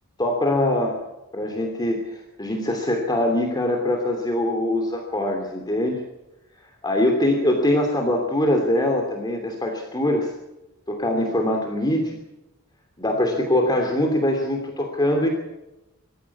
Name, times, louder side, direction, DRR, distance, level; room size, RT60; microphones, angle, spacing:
voice 1, 0.2-1.0 1.3-6.0 6.8-10.3 10.9-12.2 13.0-15.3, left 1 dB, 20° left, 2 dB, 2.9 m, -23 dB
26.5 x 15.0 x 8.5 m, 0.97 s
head